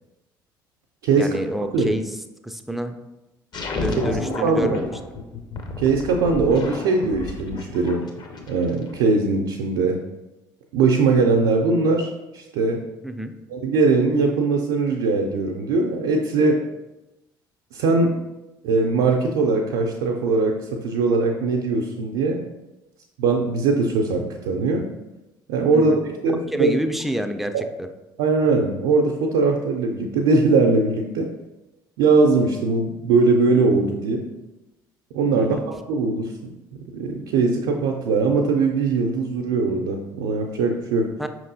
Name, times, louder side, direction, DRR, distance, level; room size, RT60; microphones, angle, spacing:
voice 1, 1.2-2.2 2.4-3.0 3.7-4.9 13.0-13.3 25.7-26.0 26.5-27.9 35.4-35.6 41.2-41.3, equal, ahead, 7 dB, 0.3 m, -28 dB
sound 1, 3.5-8.9, left 3 dB, 40° left, 0.6 m, -32 dB
voice 2, 4.4-4.8 5.8-8.0 8.5-10.0 10.7-12.8 13.5-16.6 17.7-18.1 18.6-20.5 20.8-22.4 23.2-24.9 25.5-25.9 26.2-26.7 27.5-27.6 28.2-31.3 32.0-34.2 35.1-35.6 35.9-36.3 36.9-41.1, right 3 dB, 65° right, 1 dB, 0.4 m, -20 dB
5.2 x 3.0 x 2.6 m, 0.98 s
figure-of-eight pair, 55°, 11 cm